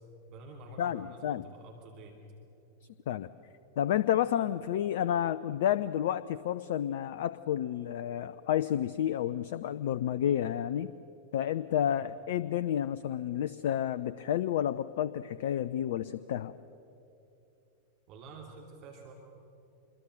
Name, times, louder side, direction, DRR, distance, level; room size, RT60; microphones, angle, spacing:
voice 1, 0.3-2.2 12.0-12.1 18.1-19.1, right 2 dB, 40° right, 1 dB, 2.7 m, -48 dB
voice 2, 0.8-1.4 3.1-3.3 3.8-10.9 11.3-16.5, left 10 dB, 55° left, 15 dB, 0.5 m, -30 dB
26.5 x 22.5 x 6.6 m, 2.9 s
figure-of-eight pair, 90°, 0 cm